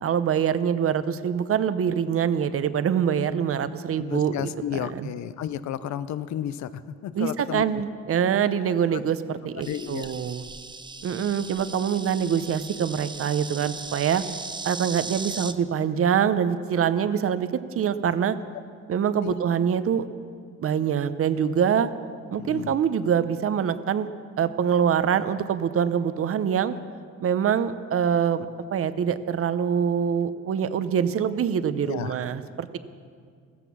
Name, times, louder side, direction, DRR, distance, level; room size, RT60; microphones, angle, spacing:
voice 1, 0.0-5.1 7.2-10.5 11.0-14.2 14.6-17.5 17.7-18.4 18.9-20.1 20.6-21.9 22.3-24.1 24.4-26.7 27.2-28.5 28.7-32.8, right 8 dB, 50° right, 13 dB, 0.8 m, -24 dB
voice 2, 4.1-7.8 9.6-10.1 19.2-19.3 22.4-22.8 31.8-32.1, left 10 dB, 70° left, 14 dB, 0.7 m, -32 dB
Insect, 9.6-15.5, right 4 dB, 15° right, 0.6 m, -38 dB
15.0 x 14.0 x 6.1 m, 2.1 s
cardioid pair, 110°, 29 cm